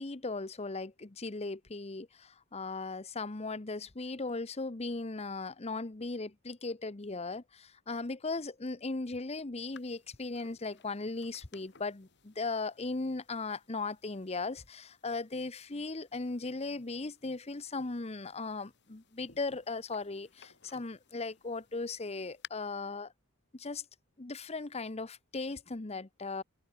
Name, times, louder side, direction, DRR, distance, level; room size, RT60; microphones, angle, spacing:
voice 1, 0.0-23.1 23.5-23.8 24.2-26.4, left 3 dB, 30° left, 0.8 m, -38 dB
sound 1, 9.7-22.5, left 8 dB, 50° left, 3.4 m, -59 dB
head